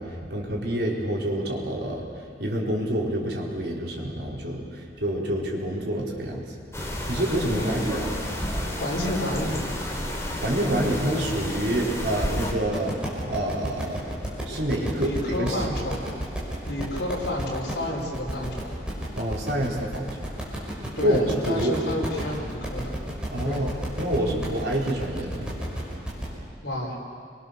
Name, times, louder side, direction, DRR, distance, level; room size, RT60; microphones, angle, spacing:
voice 1, 0.0-6.6 7.1-8.1 10.4-14.1 14.4-15.6 19.1-20.2 21.0-21.8 23.3-23.7 24.0-25.6, right 1 dB, 65° right, -3 dB, 4.9 m, -27 dB
sound 1, 6.7-12.5, left 1 dB, 15° left, 3.6 m, -31 dB
voice 2, 7.5-7.9 8.8-9.7 15.0-16.0 16.7-18.7 21.0-23.0 23.4-23.6 26.6-27.0, left 1 dB, 70° left, -2 dB, 5.6 m, -30 dB
sound 2, 12.7-26.3, equal, 5° right, 6.0 m, -33 dB
29.0 x 24.0 x 6.9 m, 2.2 s
head